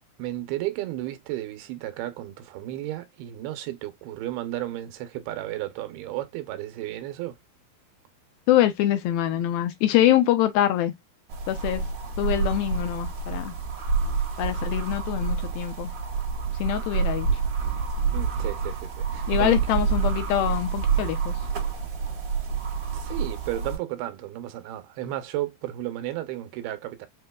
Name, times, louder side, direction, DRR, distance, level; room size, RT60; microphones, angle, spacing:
voice 1, 0.2-7.4 18.1-19.6 22.9-27.1, right 14 dB, 85° right, 2.7 m, -33 dB
voice 2, 8.5-10.9 11.5-11.8 12.2-13.6 14.4-15.9 16.6-17.4 19.3-21.4, left 12 dB, 80° left, 2.4 m, -24 dB
sound 1, 11.3-23.8, right 5 dB, 50° right, 2.6 m, -28 dB
6.5 x 2.8 x 2.2 m
omnidirectional pair, 4.4 m